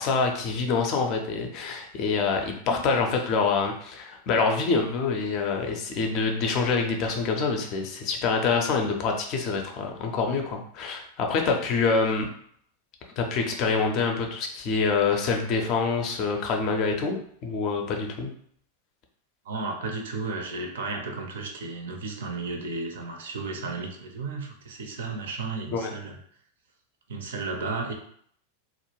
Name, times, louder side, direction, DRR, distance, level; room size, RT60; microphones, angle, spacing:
voice 1, 0.0-12.3 13.2-18.3 25.7-25.9, left 4 dB, 40° left, 3 dB, 0.5 m, -26 dB
voice 2, 19.4-26.2 27.1-27.9, right 3 dB, 60° right, 3 dB, 0.5 m, -33 dB
2.2 x 2.0 x 3.0 m, 0.63 s
figure-of-eight pair, 90°, 0 cm